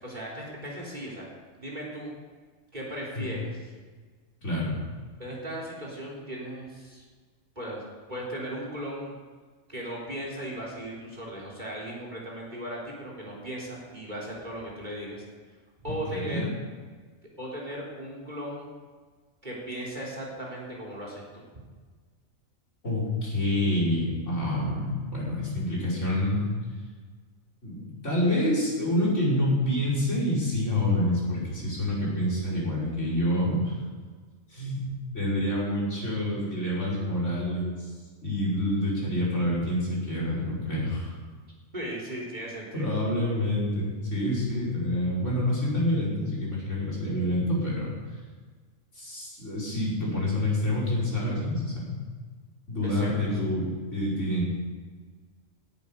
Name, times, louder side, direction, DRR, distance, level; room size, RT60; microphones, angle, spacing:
voice 1, 0.0-1.3 1.6-2.1 2.7-3.6 5.2-7.0 7.6-7.8 8.1-9.1 9.7-15.2 15.8-16.5 17.4-18.7 19.4-21.5 41.7-43.0 52.8-53.4, right 1 dB, 35° right, -3 dB, 4.1 m, -37 dB
voice 2, 4.4-4.8 15.9-16.5 22.8-26.5 27.6-33.7 34.5-37.9 38.2-41.1 42.7-47.9 48.9-52.0 52.7-54.5, left 1 dB, 65° left, -5 dB, 5.7 m, -27 dB
17.5 x 11.5 x 5.4 m, 1.5 s
omnidirectional pair, 1.4 m